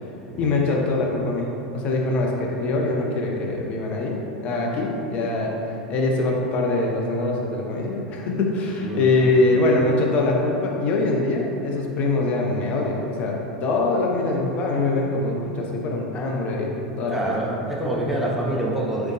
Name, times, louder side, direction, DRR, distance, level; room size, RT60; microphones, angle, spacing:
voice 1, 0.4-1.5 1.7-5.5 5.9-16.7 17.0-17.3, left 2 dB, 35° left, -1 dB, 0.6 m, -23 dB
voice 2, 8.8-9.3 17.1-19.1, right 1 dB, 5° right, -4 dB, 0.6 m, -26 dB
4.0 x 3.1 x 3.2 m, 2.9 s
figure-of-eight pair, 85°, 4 cm